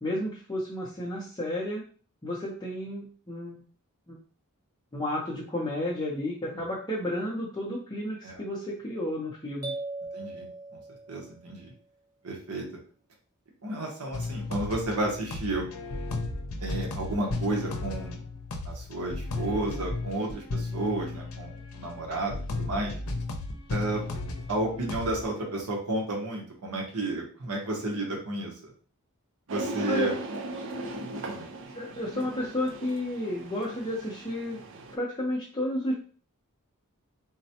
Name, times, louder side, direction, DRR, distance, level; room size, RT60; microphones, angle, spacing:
voice 1, 0.0-1.8 2.2-3.6 4.1-4.2 4.9-9.7 29.9-30.2 31.7-34.6 34.9-35.9, left 1 dB, 20° left, -6 dB, 0.6 m, -32 dB
sound 1, 9.6-11.5, right 2 dB, 15° right, 0.7 m, -39 dB
voice 2, 10.1-10.8 11.1-11.7 12.2-12.7 13.6-15.7 16.6-18.2 18.6-23.0 23.7-24.0 24.5-28.5 29.5-30.1 31.2-31.5, right 2 dB, 85° right, 0 dB, 0.9 m, -32 dB
sound 2, 14.1-25.3, left 2 dB, 80° left, 0.6 m, -35 dB
sound 3, 29.5-34.9, right 2 dB, 60° right, 0.5 m, -37 dB
3.9 x 2.1 x 2.8 m, 0.41 s
head